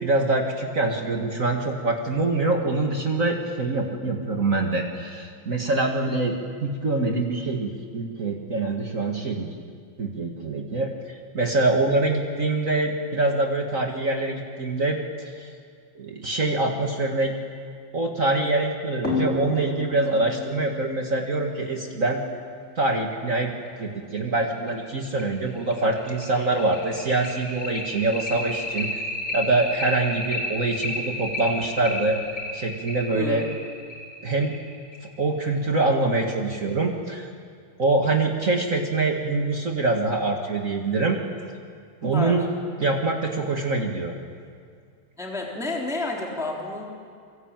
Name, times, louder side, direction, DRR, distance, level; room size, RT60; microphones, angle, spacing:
voice 1, 0.0-6.3 6.6-9.5 10.0-10.9 11.3-15.0 15.4-15.5 15.9-17.3 17.9-22.2 22.8-28.9 29.3-32.2 32.5-33.5 34.2-34.5 35.2-37.3 37.8-41.2 42.0-42.4 42.8-44.1, right 2 dB, 55° right, 2 dB, 0.8 m, -24 dB
sound 1, 19.0-22.2 23.7-23.8 24.2-24.3 24.7-24.8 25.2-35.2, left 2 dB, 15° left, 5.1 m, -32 dB
voice 2, 45.2-46.9, left 2 dB, ahead, -1 dB, 3.1 m, -30 dB
27.5 x 23.5 x 9.1 m, 2.2 s
omnidirectional pair, 4.6 m